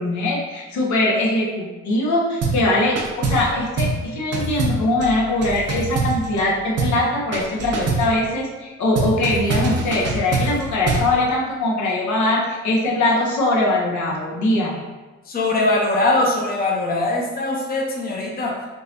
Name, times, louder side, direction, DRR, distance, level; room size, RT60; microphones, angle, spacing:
voice 1, 0.0-14.8, left 2 dB, 70° left, -2 dB, 0.8 m, -21 dB
sound 1, 2.4-2.7 2.9-3.5 3.8-4.0 4.3-6.5 6.8-7.0 7.3-8.1 8.9-11.1, right 3 dB, 55° right, 0.7 m, -23 dB
voice 2, 15.3-18.5, left 2 dB, 30° left, -2 dB, 0.7 m, -21 dB
3.8 x 2.8 x 2.6 m, 1.2 s
cardioid pair, 90°, 30 cm